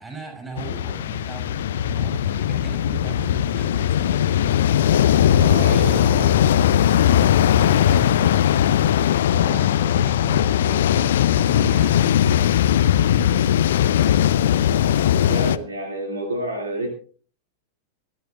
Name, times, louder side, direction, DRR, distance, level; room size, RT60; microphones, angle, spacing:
voice 1, 0.0-4.4 5.6-6.6 7.6-12.5, right 4 dB, 15° right, 2 dB, 7.9 m, -38 dB
sound 1, 0.6-15.6, left 10 dB, 60° left, 0.6 m, -19 dB
voice 2, 5.4-6.0 15.3-16.9, right 1 dB, 70° right, 3 dB, 2.5 m, -28 dB
25.5 x 11.0 x 2.5 m, 0.41 s
figure-of-eight pair, 90°, 0 cm